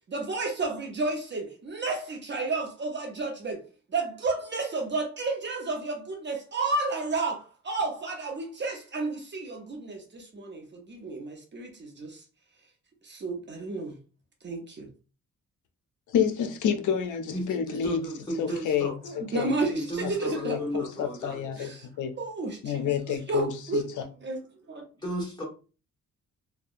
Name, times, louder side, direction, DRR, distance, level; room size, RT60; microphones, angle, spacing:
voice 1, 0.1-3.6 3.9-12.2 13.0-14.0 14.4-14.9 19.1-20.6 21.6-21.9 22.2-23.9 24.2-24.4 24.7-24.9, right 3 dB, 40° right, 0.6 m, -32 dB
voice 2, 16.1-18.0 18.4-19.5 20.4-21.7 22.0-22.1 22.6-23.8, left 8 dB, 80° left, 0.5 m, -29 dB
voice 3, 17.3-19.0 19.7-21.7 25.0-25.4, right 1 dB, 15° left, 1.2 m, -34 dB
2.7 x 2.1 x 2.4 m
cardioid pair, 110°, 30 cm